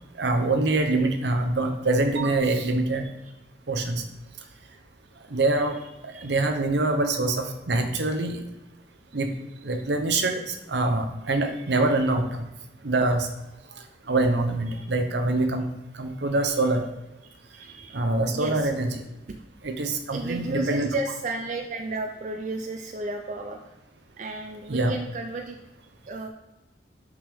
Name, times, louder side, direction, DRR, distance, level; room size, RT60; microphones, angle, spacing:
voice 1, 0.2-3.1 3.7-4.0 5.3-5.8 6.0-8.4 9.1-9.3 9.6-12.4 12.8-13.3 14.1-15.7 16.0-16.8 17.9-19.0 19.6-20.9 24.7-24.9, right 2 dB, 65° right, 5 dB, 0.8 m, -24 dB
voice 2, 5.7-6.4 14.7-14.9 17.5-18.0 18.3-18.7 20.1-23.7 24.2-25.6 26.1-26.3, right 2 dB, 40° right, 3 dB, 0.4 m, -33 dB
5.9 x 5.3 x 3.5 m, 0.99 s
head